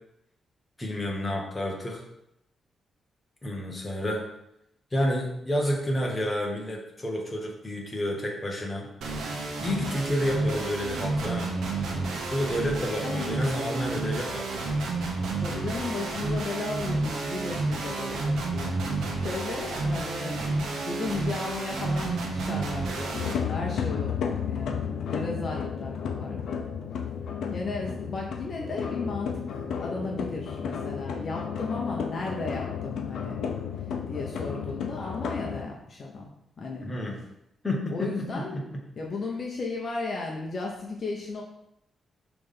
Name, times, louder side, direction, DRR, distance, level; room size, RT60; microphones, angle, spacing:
voice 1, 0.8-2.0 3.4-4.3 4.9-8.9 9.6-11.5 12.3-14.7 36.8-37.2 37.6-38.8, left 1 dB, 15° left, -1 dB, 1.3 m, -30 dB
sound 1, 9.0-23.3, right 3 dB, 90° right, 1.2 m, -30 dB
voice 2, 15.4-20.4 20.9-26.7 27.5-33.4 34.1-36.3 36.6-36.9 37.9-38.6 39.0-41.4, left 3 dB, 40° left, -1 dB, 0.9 m, -35 dB
sound 2, 23.1-35.7, left 7 dB, 85° left, 0.6 m, -32 dB
6.1 x 3.4 x 5.5 m, 0.80 s
wide cardioid pair, 145°, 0 cm